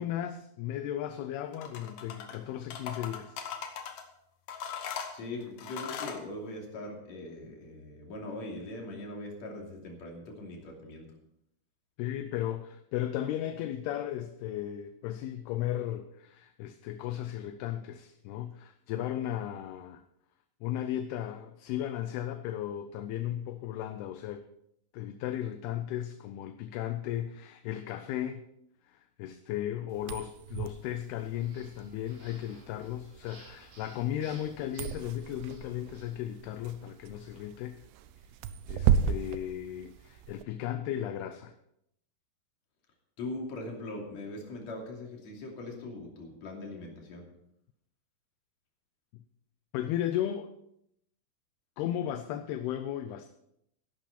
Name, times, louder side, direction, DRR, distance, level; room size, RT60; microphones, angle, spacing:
voice 1, 0.0-3.4 12.0-20.0 20.6-24.5 24.9-28.4 28.9-37.8 38.7-41.5 49.7-50.5 51.8-53.3, left 11 dB, 80° left, 9 dB, 2.6 m, -35 dB
sound 1, 1.5-2.4 2.7-4.0 4.5-6.2, left 7 dB, 60° left, 2.0 m, -39 dB
voice 2, 5.1-11.1 43.2-47.2, left 2 dB, 45° left, 0 dB, 3.7 m, -41 dB
sound 2, 29.9-40.4, right 8 dB, 85° right, 2.8 m, -34 dB
sound 3, 31.3-36.2, right 2 dB, 30° right, 3.4 m, -57 dB
14.5 x 11.0 x 4.2 m, 0.76 s
omnidirectional pair, 4.8 m